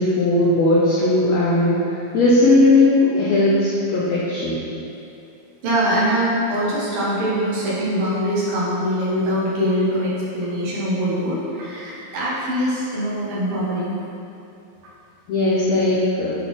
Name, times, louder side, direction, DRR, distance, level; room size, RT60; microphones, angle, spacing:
voice 1, 0.0-4.6 15.3-16.3, left 2 dB, 90° left, -7 dB, 1.4 m, -18 dB
voice 2, 5.6-14.0, equal, 75° right, -8 dB, 3.0 m, -23 dB
7.8 x 3.9 x 3.7 m, 2.7 s
omnidirectional pair, 4.0 m